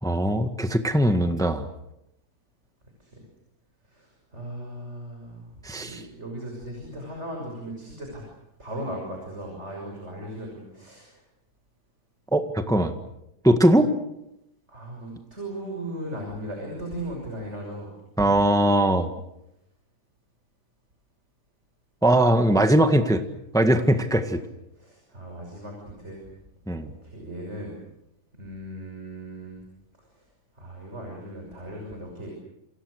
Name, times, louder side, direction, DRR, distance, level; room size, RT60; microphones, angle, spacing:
voice 1, 0.0-1.7 5.6-6.0 12.3-12.9 13.4-13.9 18.2-19.1 22.0-23.2 23.5-24.4 26.7-26.9, right 1 dB, 5° left, 7 dB, 0.6 m, -20 dB
voice 2, 3.8-8.3 8.6-11.2 14.7-17.9 18.2-18.4 24.7-26.2 26.8-27.8 28.4-29.6 30.1-30.3 30.5-32.3, right 1 dB, 20° right, 1 dB, 6.5 m, -37 dB
28.5 x 27.5 x 6.5 m, 0.85 s
omnidirectional pair, 3.3 m